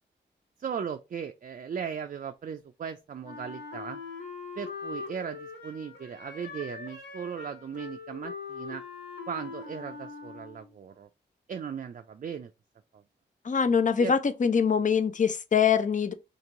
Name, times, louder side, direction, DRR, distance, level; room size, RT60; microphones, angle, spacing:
voice 1, 0.6-4.0 4.6-8.8 9.3-11.1 11.5-12.5 12.9-13.0 14.0-14.1, right 7 dB, 45° right, 0.4 m, -37 dB
Wind instrument woodwind instrument, 3.2-10.8, left 5 dB, 75° left, 1.7 m, -42 dB
voice 2, 13.4-16.1, left 6 dB, 40° left, 0.5 m, -24 dB
2.9 x 2.6 x 3.7 m
cardioid pair, 40°, 19 cm